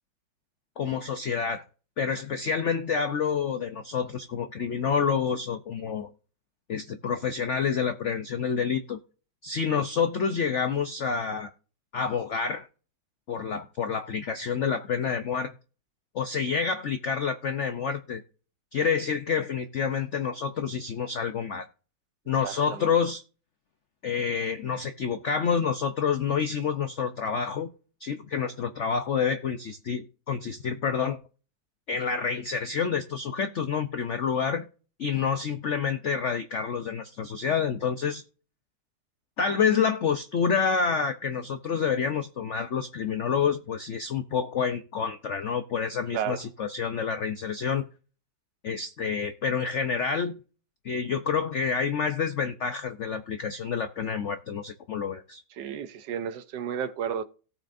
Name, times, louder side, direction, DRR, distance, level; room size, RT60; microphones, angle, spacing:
voice 1, 0.8-1.6 2.0-6.1 6.7-9.0 9.4-11.5 11.9-12.7 13.3-15.5 16.1-18.2 18.7-21.7 22.3-23.2 24.0-27.7 28.0-31.2 31.9-34.7 35.0-38.2 39.4-47.8 48.6-50.4 50.8-55.4, left 6 dB, 75° left, 0.6 m, -28 dB
voice 2, 22.4-22.9 46.1-46.4 55.6-57.2, right 8 dB, 70° right, 1.4 m, -32 dB
18.0 x 6.1 x 2.6 m
omnidirectional pair, 2.1 m